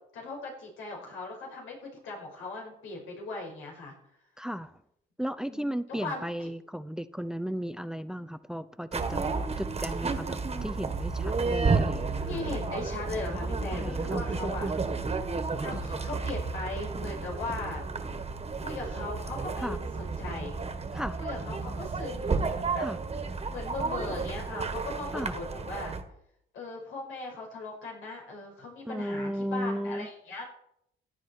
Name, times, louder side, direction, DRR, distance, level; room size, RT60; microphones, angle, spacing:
voice 1, 0.1-3.9 5.5-6.5 12.3-14.9 15.5-17.8 18.6-20.6 21.2-22.4 22.7-22.9 23.5-25.9 26.5-30.4, left 3 dB, 85° left, 0 dB, 5.4 m, -38 dB
voice 2, 4.4-4.8 5.2-9.2 9.6-12.4 13.7-14.2 19.6-19.8 20.9-21.2 22.8-23.0 25.1-25.4 28.9-30.1, equal, 5° right, 14 dB, 0.6 m, -35 dB
sound 1, 8.9-26.0, right 4 dB, 30° right, 1.6 m, -32 dB
sound 2, 15.7-17.7, left 2 dB, 20° left, 1.5 m, -47 dB
16.0 x 9.7 x 4.5 m, 0.75 s
cardioid pair, 90°, 20 cm